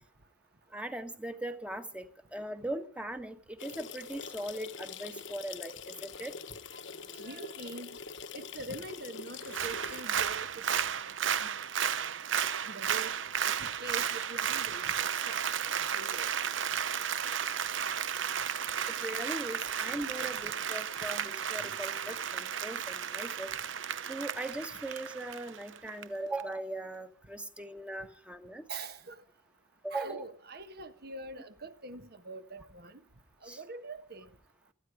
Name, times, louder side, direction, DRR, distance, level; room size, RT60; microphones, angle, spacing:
voice 1, 0.7-6.3 19.0-23.5 24.1-28.6 29.8-30.2 33.4-33.6, right 1 dB, 5° right, 1.3 m, -39 dB
sound 1, 3.6-10.0, left 6 dB, 70° left, 1.1 m, -44 dB
voice 2, 7.1-7.9 8.3-10.9 11.4-11.7 12.6-13.1 13.6-15.4 15.7-16.3 28.7-29.2 29.9-33.0 33.4-34.3, right 2 dB, 50° right, 1.4 m, -44 dB
Applause, 9.4-26.0 26.4-26.5, right 8 dB, 75° right, 0.8 m, -33 dB
28.5 x 10.0 x 4.9 m
head